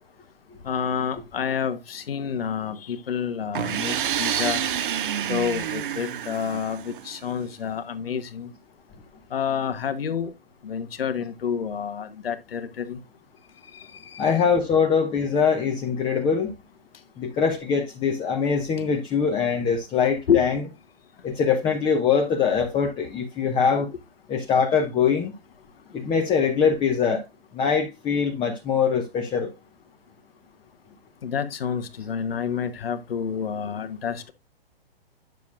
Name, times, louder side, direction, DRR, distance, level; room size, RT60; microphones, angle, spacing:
voice 1, 0.6-4.6 5.2-8.5 9.3-10.3 10.6-13.0 13.6-14.3 20.3-20.4 31.2-34.3, left 7 dB, 70° left, 1.1 m, -28 dB
sound 1, 3.5-7.3, right 9 dB, 55° right, 0.7 m, -28 dB
voice 2, 14.2-16.5 17.2-20.6 21.2-23.9 24.3-25.3 25.9-27.2 27.5-29.5, left 6 dB, 15° left, 0.9 m, -23 dB
9.1 x 7.0 x 2.4 m
figure-of-eight pair, 120°, 31 cm